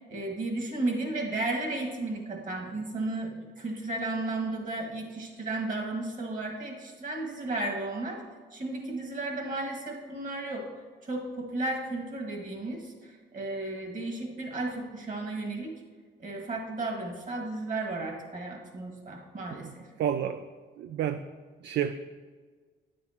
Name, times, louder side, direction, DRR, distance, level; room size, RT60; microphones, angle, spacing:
voice 1, 0.1-8.2 8.5-10.7 11.0-15.7 16.2-19.9, right 2 dB, 40° right, 1 dB, 1.9 m, -34 dB
voice 2, 20.0-20.4 20.8-21.2 21.6-21.9, right 9 dB, 60° right, 10 dB, 0.4 m, -30 dB
9.6 x 7.5 x 3.0 m, 1.5 s
cardioid pair, 90°, 20 cm